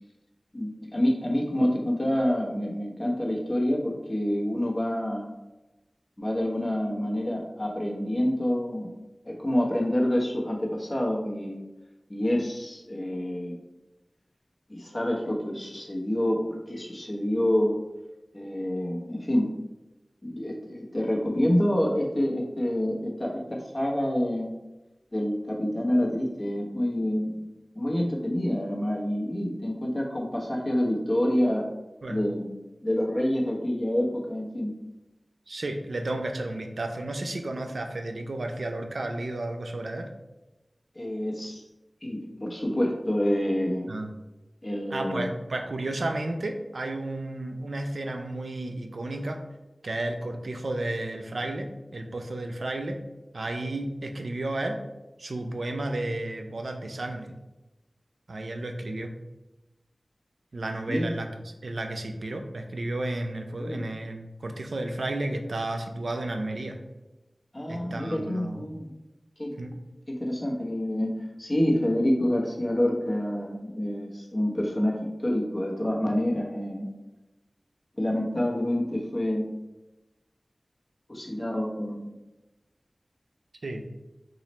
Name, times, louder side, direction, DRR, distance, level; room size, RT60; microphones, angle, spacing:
voice 1, 0.5-5.3 6.2-8.9 9.3-11.6 12.1-13.6 14.7-17.8 18.3-19.5 20.2-24.5 25.1-27.4 27.7-31.7 32.1-32.5 32.8-34.7 40.9-41.6 42.0-43.9 44.6-45.3 60.9-61.1 63.6-63.8 67.5-68.9 69.4-69.5 70.1-76.9 78.0-79.5 81.1-82.1, left 1 dB, 35° left, -2 dB, 0.9 m, -27 dB
voice 2, 35.5-40.1 43.9-44.1 44.9-49.4 49.8-53.0 53.3-54.8 55.2-57.3 58.3-59.1 60.5-61.3 61.6-66.8 67.7-68.7 69.6-69.8 83.6-83.9, right 2 dB, 85° right, 4 dB, 0.4 m, -32 dB
3.0 x 2.4 x 4.2 m, 1.0 s
wide cardioid pair, 50°, 0 cm